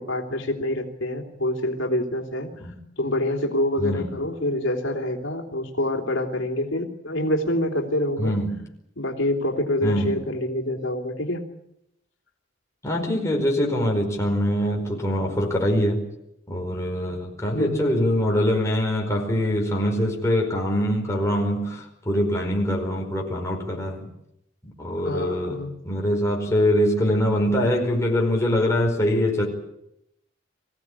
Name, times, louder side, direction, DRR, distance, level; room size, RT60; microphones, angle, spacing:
voice 1, 0.0-2.5 3.0-8.4 9.0-11.4 17.5-17.9 25.0-25.8, left 1 dB, 80° left, 3.2 m, -26 dB
voice 2, 8.2-8.6 9.8-10.2 12.8-16.0 16.5-24.1 24.6-25.6 25.8-29.5, equal, 15° left, 5.0 m, -23 dB
24.5 x 16.0 x 9.9 m
head